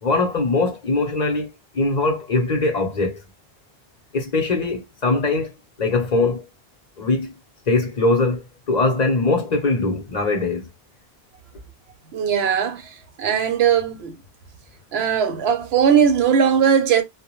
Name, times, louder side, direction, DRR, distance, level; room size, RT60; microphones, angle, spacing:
voice 1, 0.0-1.5 1.7-3.2 4.1-6.4 7.0-7.4 7.7-10.7, left 3 dB, 50° left, 0.7 m, -21 dB
voice 2, 12.1-12.9 13.2-14.2 14.9-17.0, right 7 dB, 85° right, 0.9 m, -19 dB
2.2 x 2.0 x 2.9 m
omnidirectional pair, 1.0 m